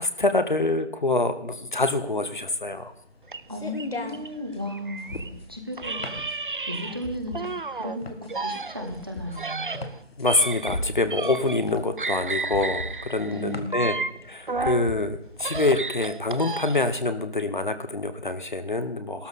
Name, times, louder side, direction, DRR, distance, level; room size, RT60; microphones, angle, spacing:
voice 1, 0.0-2.9 10.2-14.0 14.2-19.3, left 2 dB, 45° left, 10 dB, 0.9 m, -25 dB
sound 1, 2.1-16.0, left 2 dB, 60° left, 1.6 m, -38 dB
sound 2, 3.3-5.4 5.8-8.0 8.3-11.7 12.0-14.9 15.3-17.0, right 3 dB, 50° right, 0.4 m, -33 dB
voice 2, 3.5-9.7 13.3-14.0, left 1 dB, 20° right, 5 dB, 0.9 m, -36 dB
15.5 x 13.0 x 4.1 m, 0.70 s
figure-of-eight pair, 175°, 34 cm